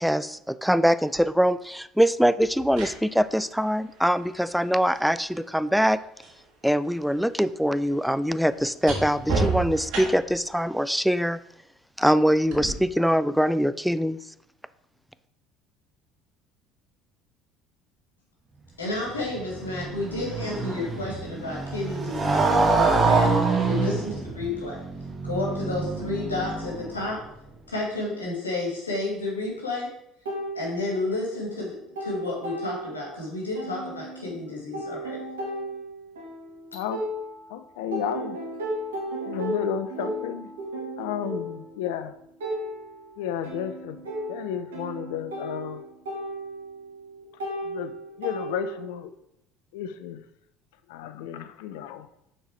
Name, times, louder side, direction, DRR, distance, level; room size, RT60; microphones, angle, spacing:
voice 1, 0.0-6.0 6.6-11.4 12.0-14.2, equal, ahead, 15 dB, 0.3 m, -23 dB
sound 1, 1.1-1.3 2.4-6.4 6.7-10.5 12.5-12.7, right 3 dB, 60° right, 2.3 m, -33 dB
voice 2, 18.8-24.8 25.2-27.2 27.7-29.9 30.5-35.2, left 2 dB, 90° left, -3 dB, 2.0 m, -31 dB
Motorcycle, 19.0-27.1, right 3 dB, 25° right, 1.4 m, -26 dB
sound 2, 30.3-31.4 31.7-33.2 33.6-37.6 37.9-49.0, right 1 dB, 80° right, 1.7 m, -35 dB
voice 3, 36.7-37.0 37.5-38.4 39.2-40.5 41.0-42.2 43.2-45.8 47.6-49.1 49.7-50.2 50.9-52.1, left 9 dB, 70° left, 11 dB, 0.5 m, -32 dB
6.4 x 4.5 x 4.5 m, 0.79 s
hypercardioid pair, 60°, 0 cm